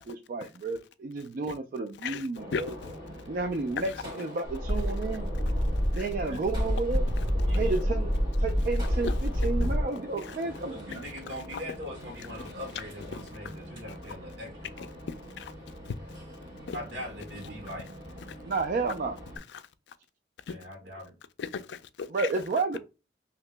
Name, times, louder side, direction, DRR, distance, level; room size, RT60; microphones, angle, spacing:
voice 1, 0.0-2.7 3.3-3.9 4.2-5.3 5.9-7.1 7.5-8.1 8.4-11.0 18.4-19.2 22.1-22.8, right 3 dB, 50° right, 0.3 m, -31 dB
voice 2, 2.0-2.9 3.8-3.9 5.9-6.1 7.2-7.3 9.0-9.2 10.2-10.3 10.9-11.0 11.5-11.6 13.1-13.5 14.8-14.9 15.4-15.5 15.9-16.0 16.7-16.8 19.5-19.6 20.5-20.6 21.4-22.3, left 6 dB, 70° left, 0.4 m, -37 dB
Gunshot gunfire, 2.4-19.4, equal, 25° right, 2.0 m, -44 dB
sound 1, 4.5-9.8, equal, 25° left, 0.8 m, -27 dB
voice 3, 7.5-7.8 10.7-14.9 16.7-17.9 20.5-21.1, left 1 dB, 75° right, 1.4 m, -41 dB
2.8 x 2.8 x 3.2 m
head